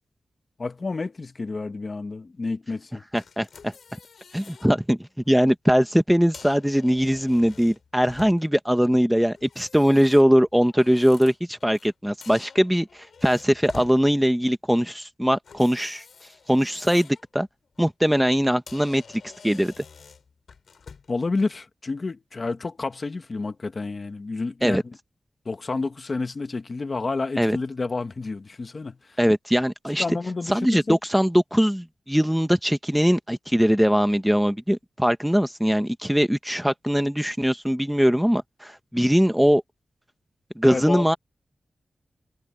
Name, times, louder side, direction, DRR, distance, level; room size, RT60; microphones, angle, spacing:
voice 1, 0.6-3.0 21.1-24.8 25.4-29.2 30.0-31.0 40.6-41.2, left 3 dB, 35° left, 1.2 m, -30 dB
voice 2, 3.1-3.7 4.3-5.0 5.3-16.0 16.5-17.5 17.8-19.0 19.4-19.8 24.6-24.8 27.4-27.6 29.2-30.2 30.5-39.6 40.6-41.2, equal, ahead, 0.8 m, -21 dB
sound 1, 3.2-4.7 5.1-5.4 6.1-8.7 9.4-11.9 12.2-14.0 15.4-17.2 17.6-17.9 18.3-18.4 18.7-21.2, left 5 dB, 70° left, 6.6 m, -47 dB
wide cardioid pair, 160°, 0 cm